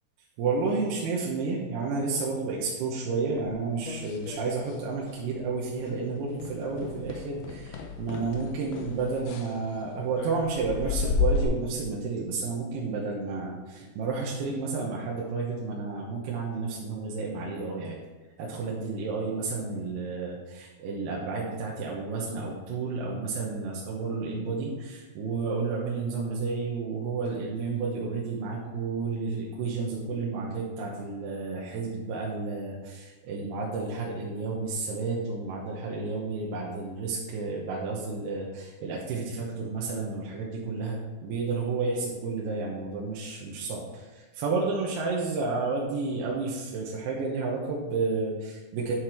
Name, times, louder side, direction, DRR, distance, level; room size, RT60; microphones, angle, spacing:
voice 1, 0.4-18.0 18.4-48.9, right 4 dB, 80° right, -3 dB, 3.1 m, -31 dB
sound 1, 3.4-4.8 5.1-5.5 5.8-5.9 6.4-11.4, left 4 dB, 80° left, 1.9 m, -33 dB
9.6 x 6.5 x 4.5 m, 1.2 s
omnidirectional pair, 4.6 m